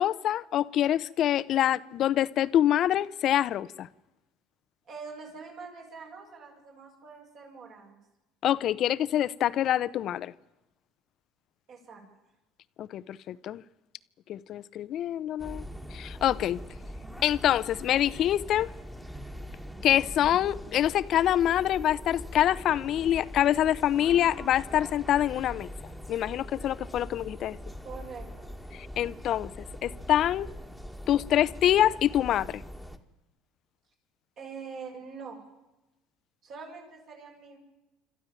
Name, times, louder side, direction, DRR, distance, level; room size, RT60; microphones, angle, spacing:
voice 1, 0.0-3.9 8.4-10.3 12.8-13.6 14.3-15.7 15.9-16.6 17.2-18.7 19.8-25.7 26.1-27.6 28.7-29.5 29.8-30.5 31.1-32.6, left 11 dB, 55° left, 0.7 m, -25 dB
voice 2, 4.8-8.0 11.7-12.0 27.8-28.5 34.4-35.4 36.4-37.6, right 5 dB, 55° right, 7.3 m, -44 dB
sound 1, 15.4-33.0, equal, 5° right, 1.9 m, -42 dB
27.0 x 13.0 x 9.0 m
supercardioid pair, 95°, 0 cm